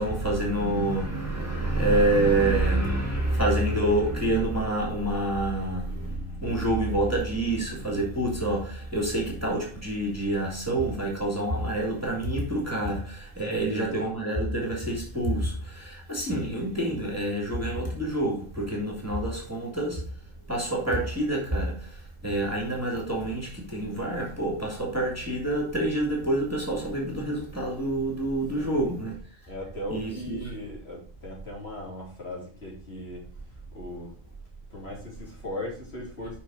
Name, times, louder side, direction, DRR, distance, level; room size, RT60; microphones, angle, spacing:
voice 1, 0.0-20.1 20.5-29.2 29.9-30.5, right 1 dB, 10° right, 2.4 m, -27 dB
voice 2, 13.5-14.0 28.6-28.9 29.5-33.2 33.7-34.2 34.7-36.4, left 1 dB, 55° left, 3.3 m, -38 dB
6.9 x 5.8 x 4.9 m
omnidirectional pair, 1.3 m